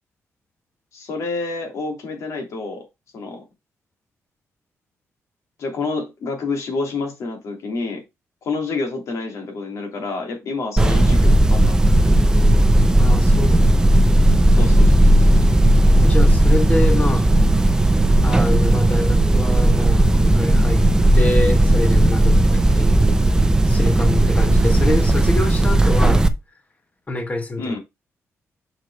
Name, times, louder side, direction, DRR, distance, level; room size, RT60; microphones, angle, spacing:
voice 1, 0.9-2.8 3.1-3.4 5.6-8.0 8.4-12.6 14.6-15.6 27.6-27.8, left 3 dB, 75° left, 2.9 m, -29 dB
sound 1, 10.8-26.3, right 1 dB, 15° right, 0.6 m, -15 dB
voice 2, 13.0-13.6 16.0-17.3 18.2-20.8 21.1-23.3 23.7-26.3 27.1-27.8, left 2 dB, 25° left, 1.5 m, -26 dB
6.4 x 4.7 x 4.6 m
wide cardioid pair, 135°, 5 cm